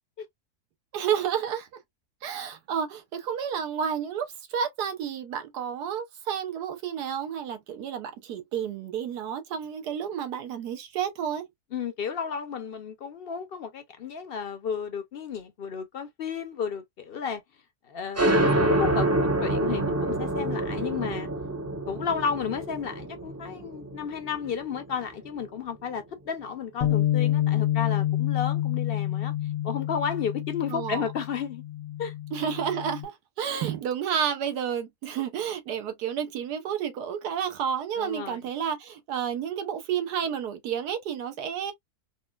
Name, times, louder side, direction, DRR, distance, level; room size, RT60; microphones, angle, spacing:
voice 1, 0.9-1.7 2.2-11.4 30.7-31.0 32.3-41.7, right 8 dB, 85° right, 1.4 m, -31 dB
voice 2, 11.7-17.4 17.8-18.3 18.6-21.3 21.9-29.3 29.6-31.6 32.0-32.1 38.0-38.4, left 7 dB, 55° left, 0.6 m, -32 dB
sound 1, 18.2-25.4, right 1 dB, 20° right, 0.4 m, -27 dB
Bass guitar, 26.8-33.1, left 13 dB, 85° left, 1.4 m, -28 dB
4.2 x 2.1 x 2.3 m
omnidirectional pair, 1.7 m